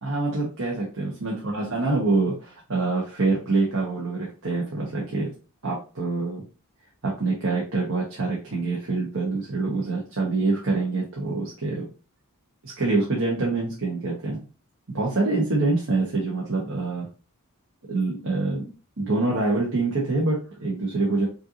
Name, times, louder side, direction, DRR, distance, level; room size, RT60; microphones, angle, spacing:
voice 1, 0.0-5.3 5.6-6.4 7.0-11.8 12.6-14.4 14.9-17.1 17.9-18.6 19.0-21.3, right 3 dB, 65° right, -3 dB, 1.2 m, -25 dB
5.5 x 2.6 x 2.9 m, 0.35 s
head